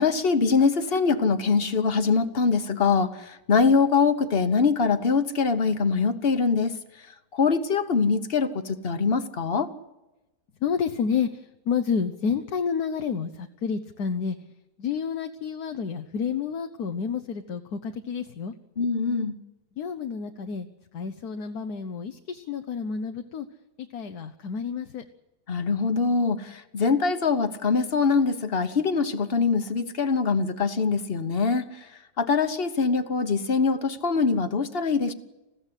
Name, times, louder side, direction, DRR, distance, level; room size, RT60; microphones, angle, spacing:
voice 1, 0.0-6.7 7.3-9.7 18.8-19.4 25.5-31.7 32.2-35.1, left 5 dB, 40° left, 10 dB, 1.3 m, -23 dB
voice 2, 10.6-14.4 14.8-18.5 19.8-20.7 20.9-23.5 23.9-25.0, left 6 dB, 75° left, 6 dB, 1.5 m, -29 dB
21.5 x 15.5 x 9.9 m, 1.0 s
omnidirectional pair, 1.7 m